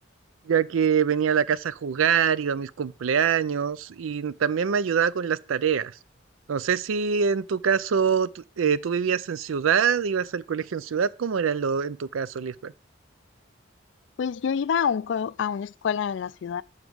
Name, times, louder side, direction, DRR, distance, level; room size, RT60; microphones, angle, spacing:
voice 1, 0.5-5.9 6.5-12.7, right 7 dB, 90° right, 0.4 m, -24 dB
voice 2, 14.2-16.6, left 7 dB, 65° left, 0.3 m, -27 dB
7.1 x 4.8 x 6.2 m
head